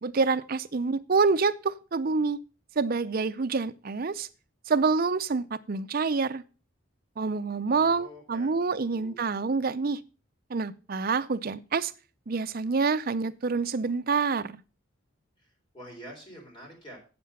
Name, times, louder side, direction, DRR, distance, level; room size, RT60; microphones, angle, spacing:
voice 1, 0.0-2.4 2.8-4.3 4.7-6.4 7.2-10.0 10.5-11.9 12.3-14.6, right 4 dB, 45° right, 11 dB, 0.5 m, -27 dB
voice 2, 7.7-9.2 15.4-17.0, equal, 20° left, 0 dB, 3.5 m, -47 dB
8.3 x 7.7 x 5.5 m, 0.34 s
head